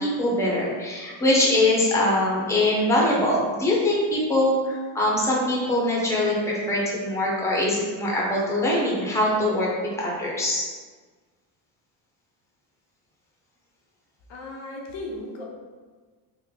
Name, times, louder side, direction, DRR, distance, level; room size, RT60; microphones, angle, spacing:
voice 1, 0.0-10.7, left 1 dB, 5° left, -4 dB, 0.8 m, -23 dB
voice 2, 14.3-15.4, left 1 dB, 65° left, -2 dB, 0.8 m, -36 dB
3.4 x 2.1 x 3.6 m, 1.4 s
cardioid pair, 105°, 47 cm